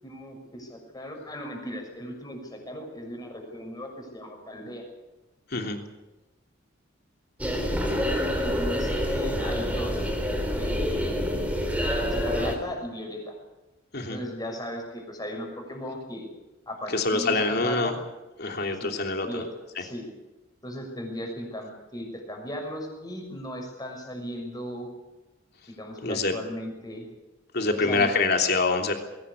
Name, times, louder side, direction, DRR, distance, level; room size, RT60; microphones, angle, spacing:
voice 1, 0.0-4.8 7.4-8.0 8.4-10.1 10.5-11.3 12.0-13.4 14.1-16.3 16.7-17.9 18.8-18.9 19.2-19.5 19.8-20.1 20.6-24.9 25.8-27.1 27.8-28.1, equal, 20° left, 2 dB, 6.3 m, -37 dB
sound 1, 7.4-12.6, equal, 5° right, 3.5 m, -27 dB
voice 2, 16.9-17.9 18.4-19.4 26.0-26.3 27.5-28.9, left 3 dB, 50° left, 3 dB, 3.2 m, -25 dB
21.0 x 18.0 x 8.4 m, 1.1 s
head